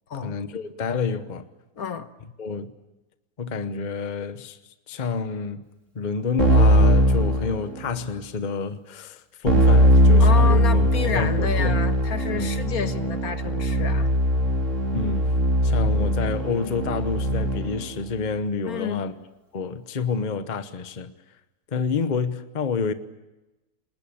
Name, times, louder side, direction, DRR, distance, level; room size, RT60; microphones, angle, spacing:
voice 1, 0.1-1.5 2.4-2.7 3.4-4.6 4.9-5.6 5.9-11.8 12.3-12.5 14.9-19.2 19.5-21.1 21.7-22.9, left 5 dB, 30° left, 1.0 m, -28 dB
voice 2, 1.8-2.1 10.2-14.1 18.7-19.0, left 6 dB, 65° left, 1.6 m, -30 dB
Keyboard (musical), 6.4-8.1 9.5-17.8, equal, 50° right, 3.3 m, -20 dB
29.5 x 20.0 x 8.6 m
omnidirectional pair, 1.7 m